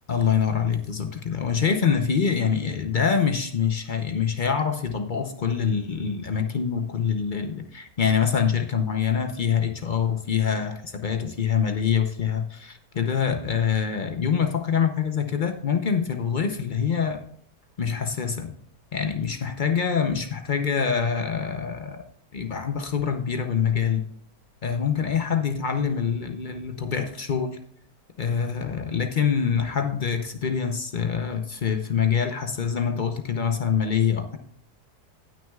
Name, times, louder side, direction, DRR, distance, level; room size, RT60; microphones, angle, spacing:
voice 1, 0.1-17.2 17.8-18.6 18.9-22.0 22.3-24.0 24.6-27.6 28.2-34.4, left 7 dB, 60° left, 6 dB, 0.5 m, -25 dB
18.5 x 6.2 x 2.3 m, 0.63 s
omnidirectional pair, 1.8 m